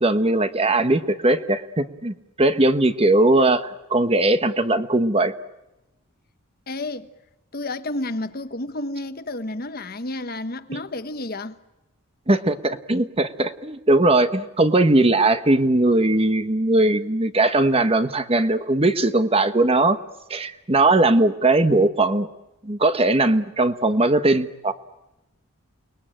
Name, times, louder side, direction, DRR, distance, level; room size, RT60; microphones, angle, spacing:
voice 1, 0.0-5.3 12.3-20.0 20.3-22.3 22.6-24.7, right 2 dB, 25° right, 1.1 m, -19 dB
voice 2, 6.7-7.1 7.5-11.6, left 2 dB, 45° left, 1.2 m, -31 dB
29.5 x 21.0 x 9.0 m
head